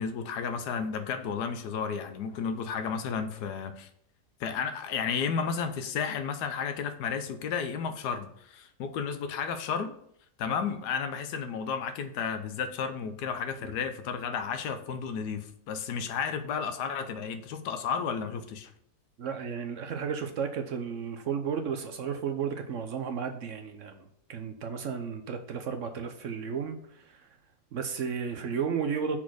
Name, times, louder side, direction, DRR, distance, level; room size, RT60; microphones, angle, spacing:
voice 1, 0.0-3.9 4.4-9.9 10.4-18.7, left 6 dB, 75° left, 9 dB, 1.3 m, -32 dB
voice 2, 19.2-27.3 27.7-29.2, right 6 dB, 60° right, 6 dB, 0.9 m, -33 dB
5.9 x 4.2 x 6.1 m, 0.70 s
omnidirectional pair, 1.8 m